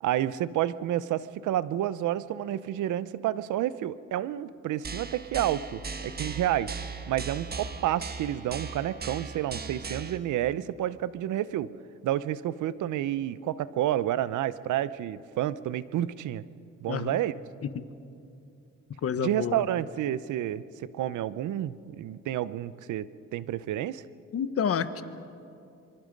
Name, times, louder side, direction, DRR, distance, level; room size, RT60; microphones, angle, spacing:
voice 1, 0.0-6.8 7.1-11.7 12.0-16.4 16.8-17.3 19.2-20.6 20.9-24.0, right 12 dB, 80° right, 17 dB, 0.8 m, -30 dB
sound 1, 4.8-10.2, right 4 dB, 30° right, 1.5 m, -38 dB
voice 2, 16.9-17.2 17.6-17.8 19.0-19.6 24.3-25.0, left 7 dB, 50° left, 12 dB, 1.2 m, -29 dB
26.0 x 23.5 x 5.3 m, 2.6 s
cardioid pair, 90°, 30 cm